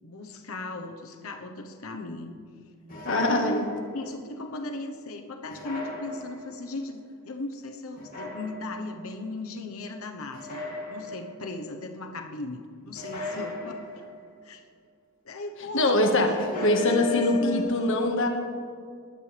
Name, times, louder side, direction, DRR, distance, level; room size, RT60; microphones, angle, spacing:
voice 1, 0.0-2.4 3.1-3.6 3.9-14.1 14.4-14.6 15.2-18.1, left 2 dB, 80° left, 4 dB, 1.1 m, -37 dB
sound 1, 2.9-4.1 5.5-6.7 8.0-9.0 10.3-11.5 12.9-14.3 16.4-17.6, left 3 dB, 40° left, 2.8 m, -37 dB
voice 2, 3.0-3.6 15.7-16.3 16.6-18.3, left 2 dB, 60° left, 3 dB, 1.7 m, -23 dB
20.0 x 12.0 x 3.4 m, 2.2 s
head